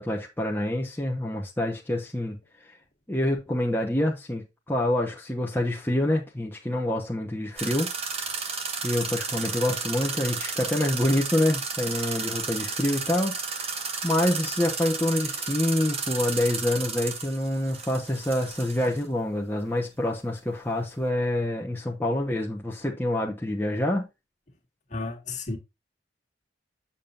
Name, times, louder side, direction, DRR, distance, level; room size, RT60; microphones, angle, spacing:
voice 1, 0.0-2.4 2.6-2.7 3.1-7.9 8.8-24.1, left 1 dB, 10° left, 1.1 m, -27 dB
sound 1, 7.6-19.0, right 5 dB, 35° right, 1.4 m, -33 dB
voice 2, 24.9-25.6, left 3 dB, 40° left, 1.8 m, -32 dB
7.4 x 7.1 x 2.5 m
head